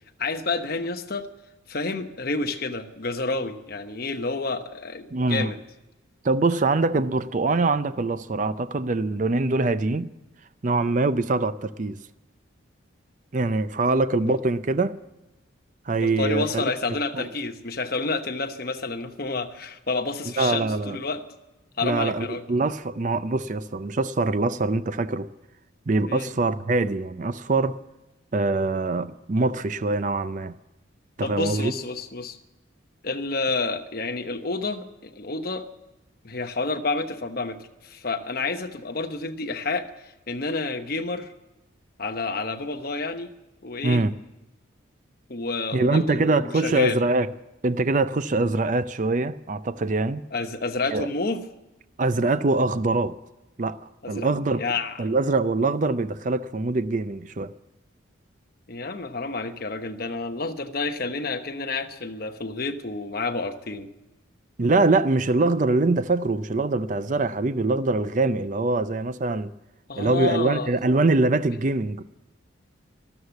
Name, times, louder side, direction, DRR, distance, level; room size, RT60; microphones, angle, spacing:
voice 1, 0.2-1.3 1.7-5.6 13.8-14.4 15.9-21.2 21.8-22.4 26.1-26.3 31.2-32.4 33.0-35.6 36.2-41.3 42.0-43.3 43.6-44.0 45.3-47.0 50.3-51.4 54.0-54.3 54.6-54.9 58.7-63.9 69.9-70.7, left 3 dB, 50° left, 1.1 m, -29 dB
voice 2, 5.1-5.5 6.2-10.1 10.6-12.0 13.3-15.0 15.9-16.7 17.1-17.3 20.4-21.0 21.8-25.3 25.9-27.8 28.3-30.6 31.2-31.7 43.8-44.1 45.7-47.3 47.6-50.2 50.9-51.1 52.0-53.2 53.6-53.8 54.1-54.6 55.0-57.5 64.6-69.5 70.0-72.0, right 3 dB, 40° right, 0.5 m, -23 dB
13.0 x 13.0 x 8.1 m
head